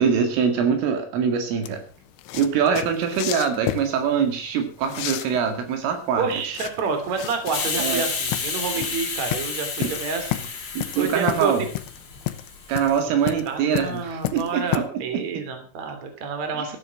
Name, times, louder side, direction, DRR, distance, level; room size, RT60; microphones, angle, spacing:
voice 1, 0.0-1.8 2.3-6.4 7.8-8.0 8.8-8.9 9.8-9.9 10.7-11.7 12.7-15.2 16.6-16.8, right 7 dB, 75° right, 6 dB, 4.6 m, -23 dB
sound 1, 1.6-14.8, left 14 dB, 75° left, 3.1 m, -32 dB
voice 2, 6.2-11.5 13.1-13.2 13.4-16.8, right 5 dB, 40° right, 6 dB, 3.6 m, -29 dB
Hiss, 7.5-12.9, left 5 dB, 35° left, 3.5 m, -31 dB
15.0 x 10.5 x 6.0 m, 0.40 s
omnidirectional pair, 6.0 m